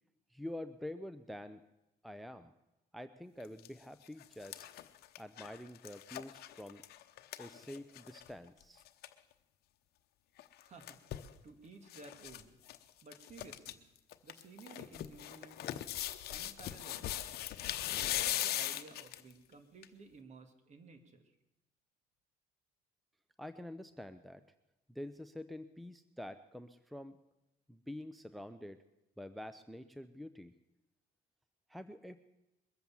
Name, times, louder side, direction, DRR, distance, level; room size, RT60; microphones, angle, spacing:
voice 1, 0.3-1.6 2.0-2.5 2.9-4.7 5.2-6.8 7.4-8.8 23.4-24.4 24.9-27.2 27.7-28.8 29.2-30.5 31.7-32.2, left 1 dB, ahead, 11 dB, 0.6 m, -47 dB
sound 1, 3.4-3.7 4.1-8.3 8.6-8.7 8.9-9.1 10.4-11.3 11.9-12.4 12.7-12.8 13.1-13.7 14.1-19.3 19.8-19.9, left 13 dB, 70° left, 0.9 m, -40 dB
voice 2, 10.6-11.0 11.4-12.6 13.0-13.8 14.2-16.0 16.3-17.1 17.9-21.2, right 4 dB, 45° right, 7 dB, 2.0 m, -55 dB
21.5 x 8.0 x 7.1 m, 0.95 s
cardioid pair, 110°, 17 cm